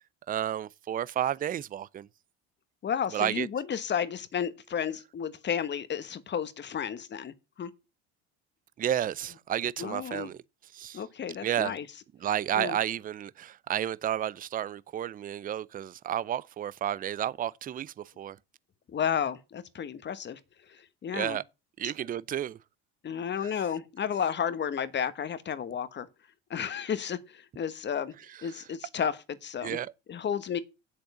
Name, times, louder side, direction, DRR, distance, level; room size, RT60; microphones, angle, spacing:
voice 1, 0.3-2.1 3.1-3.5 8.8-10.4 10.7-11.0 11.4-11.8 12.2-18.4 21.1-21.4 21.8-22.6 23.4-23.5 29.6-29.9, right 11 dB, 30° right, 0.5 m, -31 dB
voice 2, 2.8-7.7 9.8-10.3 10.9-11.8 12.5-12.8 18.9-20.4 21.0-21.4 21.8-21.9 23.0-26.1 26.5-28.1 28.4-29.8 30.1-30.6, left 8 dB, 35° left, 1.2 m, -32 dB
7.7 x 6.7 x 6.9 m
supercardioid pair, 80°, 31 cm